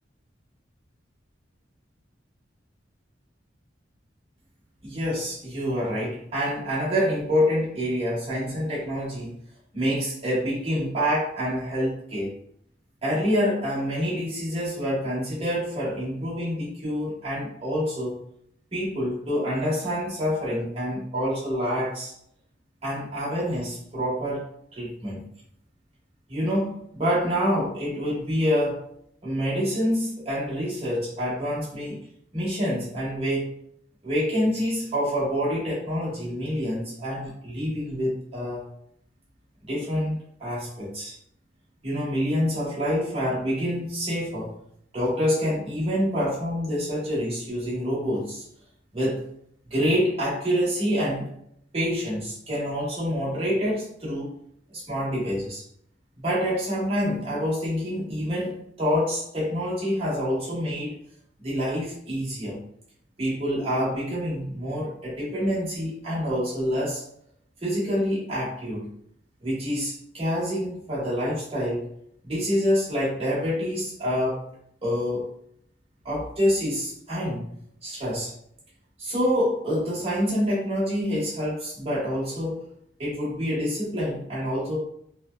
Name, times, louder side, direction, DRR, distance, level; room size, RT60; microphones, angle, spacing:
voice 1, 4.8-9.3 9.7-12.3 13.0-18.2 18.7-22.1 22.8-25.2 26.3-28.9 29.2-32.0 32.3-33.6 34.0-38.6 39.7-41.2 41.8-44.5 44.9-48.4 48.9-49.2 49.7-51.3 51.7-54.3 54.7-55.6 56.2-60.9 61.4-62.6 63.2-67.0 67.6-68.9 69.4-71.9 72.2-74.4 74.8-75.3 76.0-77.4 77.8-78.3 79.0-82.7 83.0-84.8, equal, 30° right, -7 dB, 1.0 m, -27 dB
2.6 x 2.1 x 2.2 m, 0.70 s
head